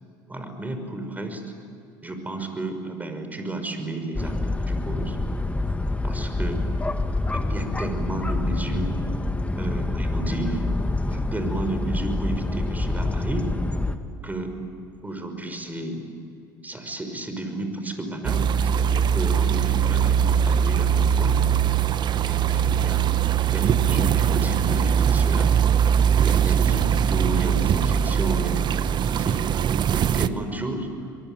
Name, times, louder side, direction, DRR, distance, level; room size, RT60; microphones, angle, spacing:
voice 1, 0.3-1.4 2.0-5.2 6.0-6.6 7.3-8.9 9.5-10.6 11.1-13.5 14.2-14.5 15.0-16.1 16.6-21.4 22.2-23.1 23.5-25.6 26.2-29.6 29.9-30.9, right 2 dB, 15° right, 6 dB, 5.8 m, -32 dB
sound 1, 4.1-14.0, left 2 dB, 15° left, 2.1 m, -26 dB
sound 2, 18.2-30.3, right 8 dB, 45° right, 1.0 m, -21 dB
24.0 x 23.5 x 9.5 m, 2.6 s
hypercardioid pair, 70°, 10 cm